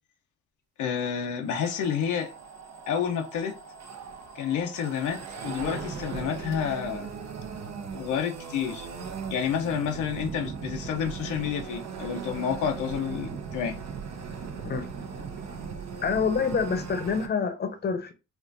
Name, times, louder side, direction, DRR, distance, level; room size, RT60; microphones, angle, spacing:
voice 1, 0.8-2.3 2.9-3.6 4.3-7.1 7.9-8.9 9.3-13.7, left 8 dB, 85° left, 0.7 m, -29 dB
sound 1, 1.5-17.3, right 6 dB, 60° right, 0.9 m, -38 dB
voice 2, 16.0-18.1, left 5 dB, 35° left, 0.8 m, -27 dB
4.3 x 2.4 x 2.6 m
cardioid pair, 90°, 30 cm